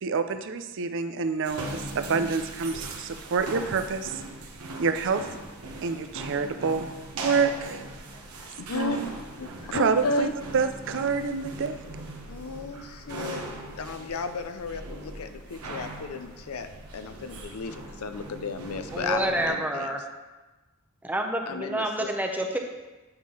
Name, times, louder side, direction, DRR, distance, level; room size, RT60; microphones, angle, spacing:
voice 1, 0.0-4.2 4.8-5.3 5.8-6.9 7.1-7.8 8.7-9.1 9.7-10.3 10.5-11.8, right 5 dB, 60° right, 9 dB, 0.5 m, -27 dB
sound 1, 1.4-19.5, right 2 dB, 90° right, 1.2 m, -40 dB
voice 2, 8.4-9.0 9.4-10.3 12.3-13.4 13.8-19.9 21.5-22.1, left 3 dB, 75° left, 8 dB, 0.5 m, -33 dB
voice 3, 18.9-20.0 21.0-22.6, right 1 dB, 10° right, 3 dB, 0.6 m, -28 dB
8.7 x 3.7 x 5.9 m, 1.2 s
head